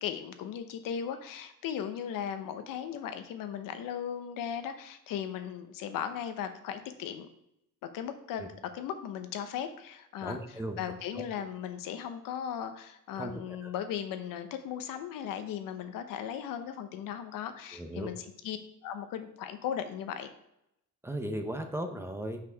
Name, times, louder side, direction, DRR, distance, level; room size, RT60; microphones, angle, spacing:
voice 1, 0.0-7.3 7.8-10.4 10.8-18.6 18.8-20.3, left 9 dB, 80° left, 9 dB, 0.9 m, -37 dB
voice 2, 10.2-10.8 13.2-13.7 17.7-18.1 21.0-22.4, right 1 dB, 10° right, 5 dB, 0.7 m, -36 dB
6.0 x 5.8 x 4.5 m, 0.81 s
cardioid pair, 130°, 33 cm